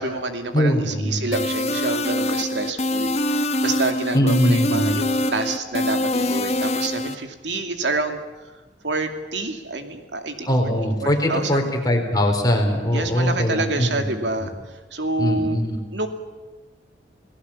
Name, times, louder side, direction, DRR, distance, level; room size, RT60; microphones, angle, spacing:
voice 1, 0.0-8.5 8.8-10.5 10.8-11.7 12.9-15.6 15.9-16.1, right 2 dB, 80° right, 6 dB, 2.6 m, -28 dB
voice 2, 0.5-1.2 4.1-4.9 10.5-14.1 14.4-14.5 15.2-15.8, equal, 20° left, 2 dB, 4.2 m, -21 dB
sound 1, 1.3-7.1, left 1 dB, 40° left, 1.3 m, -24 dB
28.5 x 18.0 x 7.3 m, 1.2 s
head